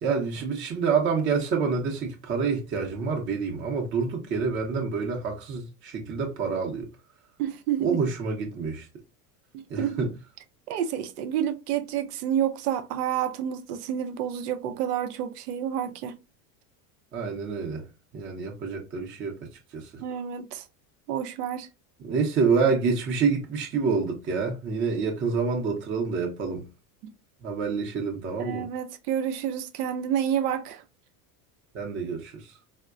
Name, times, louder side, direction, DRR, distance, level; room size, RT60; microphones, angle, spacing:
voice 1, 0.0-6.9 7.8-8.9 9.7-10.1 17.1-17.8 18.1-19.4 19.7-20.0 22.0-26.7 27.4-28.7 31.7-32.5, right 5 dB, 25° right, 0.6 m, -27 dB
voice 2, 7.4-8.0 9.5-10.0 10.7-16.2 20.0-20.6 21.1-21.7 27.0-27.1 28.4-30.8, right 9 dB, 90° right, 0.7 m, -29 dB
4.4 x 2.1 x 2.4 m
supercardioid pair, 130°, 45 cm